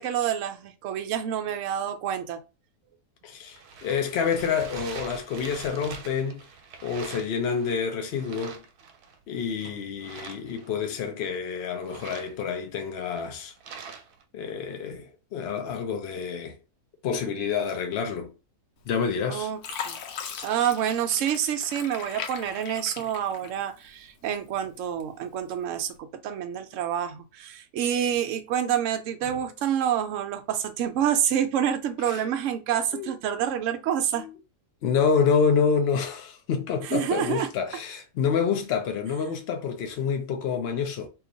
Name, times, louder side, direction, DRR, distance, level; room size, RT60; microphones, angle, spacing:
voice 1, 0.0-2.4 9.6-9.7 19.3-19.6 19.9-20.0 20.4-34.2 36.8-37.5, right 9 dB, 65° right, 0.8 m, -28 dB
voice 2, 3.2-6.4 6.8-8.6 9.3-13.5 14.3-16.5 17.0-18.3 18.9-19.5 32.1-32.2 32.9-33.1 34.2-34.3 34.8-41.1, left 6 dB, 65° left, 0.6 m, -28 dB
sound 1, 3.3-7.8 8.1-9.2 10.0-10.9 11.6-14.2, right 5 dB, 90° right, 1.2 m, -43 dB
Fill (with liquid), 18.9-19.2 19.6-24.0 24.5-25.3 25.8-26.0, left 7 dB, 85° left, 1.1 m, -39 dB
2.8 x 2.4 x 3.8 m
omnidirectional pair, 1.6 m